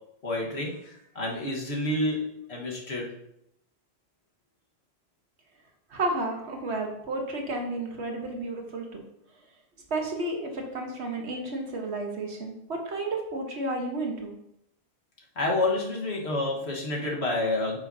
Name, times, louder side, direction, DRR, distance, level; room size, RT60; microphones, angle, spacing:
voice 1, 0.2-2.2 2.5-3.1 15.4-17.8, left 2 dB, 75° left, -2 dB, 1.7 m, -29 dB
voice 2, 5.9-9.0 9.9-14.4, right 2 dB, 85° right, 2 dB, 1.5 m, -32 dB
8.8 x 5.8 x 2.7 m, 0.79 s
omnidirectional pair, 1.1 m